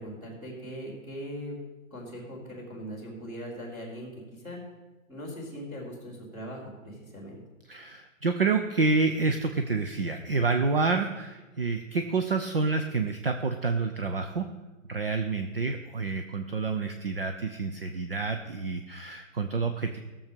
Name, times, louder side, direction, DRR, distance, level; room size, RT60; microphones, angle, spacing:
voice 1, 0.0-1.6 1.9-4.6 5.1-7.4, equal, 10° right, -8 dB, 3.0 m, -40 dB
voice 2, 7.7-14.5 14.9-20.0, right 4 dB, 45° right, 7 dB, 0.6 m, -28 dB
16.5 x 7.1 x 5.2 m, 1.2 s
hypercardioid pair, 175°, 41 cm